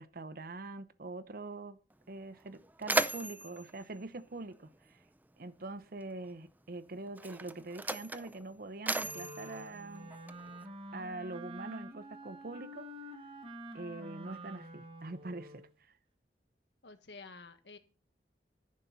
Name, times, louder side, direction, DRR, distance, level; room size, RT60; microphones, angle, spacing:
voice 1, 0.0-1.8 2.1-5.0 5.4-10.1 10.9-12.9 13.7-15.6, right 2 dB, 55° right, 0.8 m, -44 dB
Mechanisms, 1.9-2.0 2.4-5.1 6.1-6.3 7.1-10.7, right 2 dB, 10° right, 0.6 m, -37 dB
Wind instrument woodwind instrument, 9.0-15.7, equal, 30° right, 1.8 m, -48 dB
voice 2, 16.8-17.8, left 4 dB, 80° left, 1.6 m, -50 dB
11.0 x 9.7 x 4.1 m
head